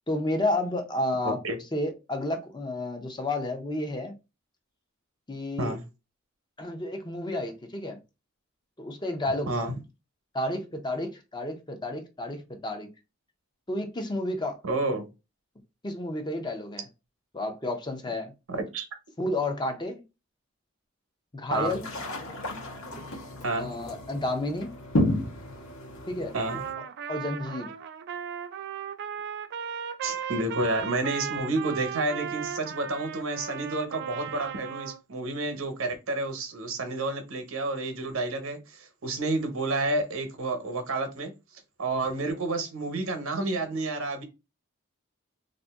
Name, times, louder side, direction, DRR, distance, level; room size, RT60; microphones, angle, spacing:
voice 1, 0.1-1.4 1.7-4.1 5.3-5.7 6.6-8.0 8.8-9.7 10.3-12.9 13.7-14.6 15.8-16.8 17.3-18.3 19.2-20.0 21.3-21.9 23.6-24.7 26.1-26.4 26.8-27.7, left 1 dB, 20° left, 0.6 m, -31 dB
voice 2, 1.2-1.6 5.6-5.8 9.5-9.8 14.6-15.1 18.5-18.8 21.5-21.8 23.4-23.7 26.3-26.6 30.0-41.3 41.8-44.2, right 2 dB, 85° right, 0.9 m, -30 dB
sound 1, 21.5-26.7, left 1 dB, 80° left, 1.1 m, -32 dB
Trumpet, 26.5-35.0, right 8 dB, 55° right, 0.3 m, -36 dB
2.6 x 2.6 x 3.5 m
head